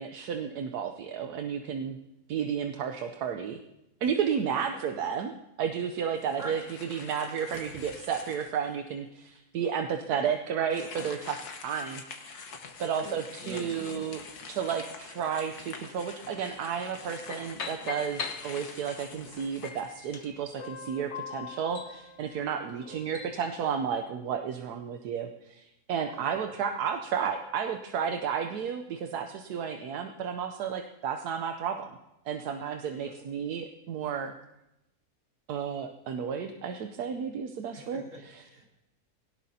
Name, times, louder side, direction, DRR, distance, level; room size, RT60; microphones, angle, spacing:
voice 1, 0.0-2.0 2.3-3.6 4.0-6.6 6.9-12.5 12.8-14.2 14.5-32.0 32.3-34.3 35.5-38.0 38.3-38.4, right 7 dB, 80° right, 6 dB, 1.3 m, -32 dB
sound 1, 6.2-8.7 9.3-9.4 10.6-20.4, left 5 dB, 80° left, 1.8 m, -46 dB
voice 2, 13.0-14.1 22.7-23.0 26.1-26.5 32.9-33.2 37.7-38.7, right 1 dB, 55° right, -3 dB, 3.5 m, -44 dB
sound 2, 17.3-19.0 19.6-23.4, left 5 dB, 50° left, 1.2 m, -41 dB
20.5 x 18.0 x 2.8 m, 0.91 s
omnidirectional pair, 1.6 m